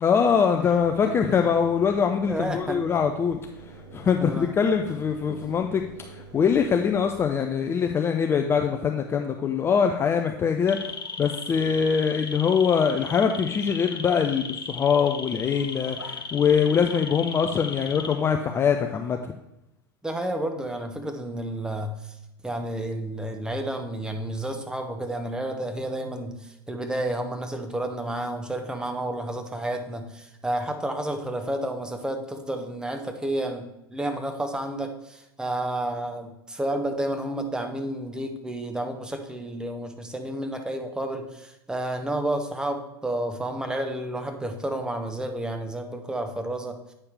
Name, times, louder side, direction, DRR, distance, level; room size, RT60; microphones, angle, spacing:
voice 1, 0.0-3.4 3.7-10.9 11.2-19.3, left 6 dB, 20° left, 4 dB, 0.4 m, -23 dB
Engine, 0.7-7.1, right 4 dB, 55° right, 2.1 m, -45 dB
voice 2, 2.3-2.8 4.2-4.5 5.3-5.4 20.0-22.2 22.4-46.8, right 1 dB, 5° right, 5 dB, 0.8 m, -31 dB
sound 1, 10.7-18.5 18.8-19.2, left 4 dB, 80° left, 0.7 m, -36 dB
8.4 x 5.6 x 3.3 m, 0.89 s
figure-of-eight pair, 85°, 12 cm